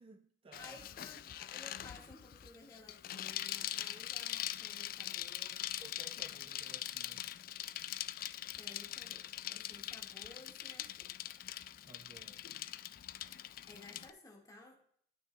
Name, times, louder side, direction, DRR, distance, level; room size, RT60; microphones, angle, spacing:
voice 1, 0.0-0.8 5.8-7.3 11.8-12.4, right 2 dB, 30° right, 7 dB, 0.5 m, -57 dB
Bicycle, 0.5-14.1, left 12 dB, 50° left, 0.3 m, -43 dB
voice 2, 0.6-5.7 8.6-11.3 13.7-14.8, left 2 dB, 20° left, -1 dB, 1.8 m, -56 dB
12.5 x 6.2 x 2.3 m, 0.63 s
head